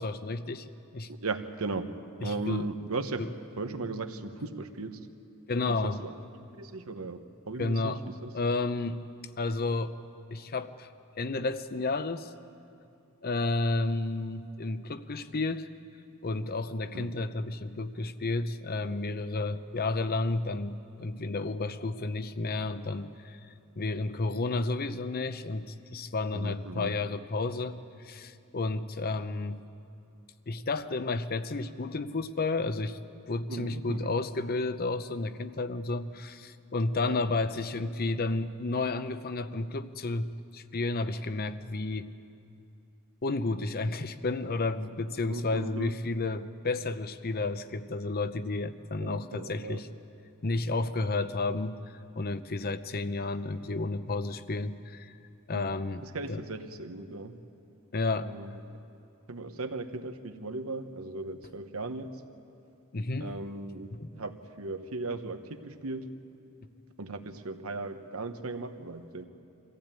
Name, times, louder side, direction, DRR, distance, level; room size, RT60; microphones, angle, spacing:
voice 1, 0.0-1.1 2.2-2.7 5.5-6.0 7.6-8.0 8.3-9.0 9.4-10.0 10.3-10.9 11.2-12.3 13.2-15.7 16.2-29.6 30.5-33.0 33.3-42.1 43.2-49.9 50.4-51.8 52.2-55.1 55.5-56.0 56.3-56.4 57.9-58.3 62.9-63.3 63.9-64.1, left 3 dB, 45° left, 12 dB, 0.7 m, -31 dB
voice 2, 1.1-1.9 2.2-3.2 3.6-5.1 5.7-6.1 6.5-8.3 16.9-17.1 26.3-26.9 33.5-34.2 37.0-37.2 45.2-46.0 49.0-49.8 55.5-55.6 56.0-57.4 58.2-58.6 59.3-62.2 63.2-66.1 67.0-69.3, right 3 dB, 80° right, 8 dB, 1.2 m, -37 dB
24.0 x 15.0 x 8.9 m, 2.6 s
head